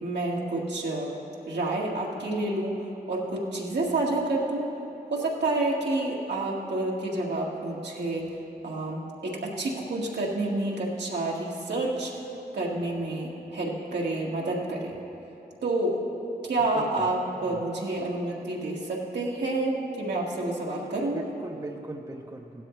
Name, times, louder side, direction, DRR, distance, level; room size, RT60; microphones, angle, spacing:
voice 1, 0.0-1.1 1.5-2.8 3.1-4.7 5.1-8.3 8.6-12.2 12.5-14.9 15.6-16.0 16.4-21.2, right 2 dB, 85° right, -3 dB, 1.8 m, -29 dB
voice 2, 16.6-17.1 17.3-17.6 21.1-22.6, right 2 dB, 20° right, 1 dB, 0.7 m, -40 dB
16.0 x 12.0 x 3.2 m, 2.8 s
cardioid pair, 55°, 17 cm